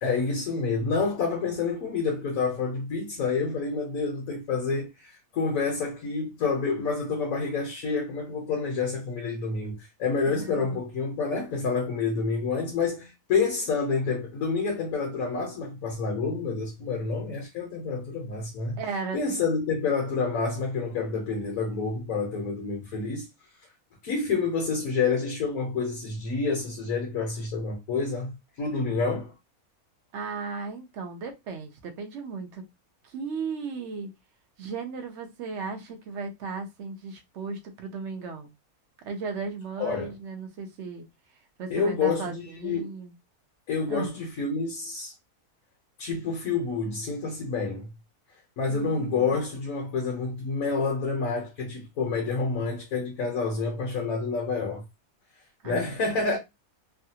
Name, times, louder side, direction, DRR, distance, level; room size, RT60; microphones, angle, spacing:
voice 1, 0.0-18.8 19.1-23.2 24.0-29.3 39.8-40.1 41.7-42.9 43.7-45.1 46.0-47.9 48.6-54.8 55.6-56.4, left 4 dB, 75° left, 1.3 m, -28 dB
voice 2, 10.2-10.8 18.8-19.2 30.1-32.6 33.0-34.1 34.6-38.5 39.0-41.1 41.6-43.1 43.9-44.2 48.7-49.4 55.6-55.9, right 4 dB, 60° right, 0.9 m, -36 dB
3.2 x 2.3 x 2.8 m
omnidirectional pair, 1.5 m